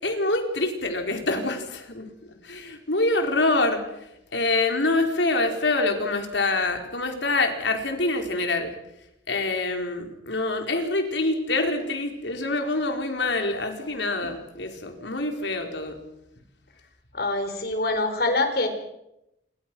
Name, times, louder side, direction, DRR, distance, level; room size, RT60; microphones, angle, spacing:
voice 1, 0.0-2.1 2.4-3.8 4.3-8.7 9.3-16.0, left 2 dB, 75° left, 4 dB, 4.4 m, -25 dB
voice 2, 17.1-18.7, left 2 dB, 55° left, 7 dB, 4.4 m, -25 dB
29.0 x 24.0 x 6.2 m, 0.85 s
head